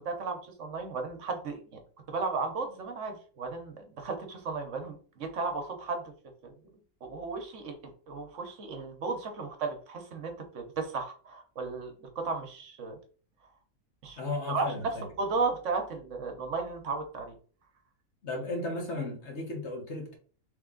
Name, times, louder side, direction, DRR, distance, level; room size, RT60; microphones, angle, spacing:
voice 1, 0.0-1.8 2.1-6.0 6.4-6.5 7.0-13.0 14.0-14.2 14.5-17.3, right 4 dB, 65° right, 5 dB, 1.1 m, -34 dB
voice 2, 14.2-15.1 18.2-20.2, left 2 dB, 55° left, 0 dB, 1.5 m, -35 dB
3.4 x 3.3 x 3.7 m, 0.42 s
omnidirectional pair, 1.4 m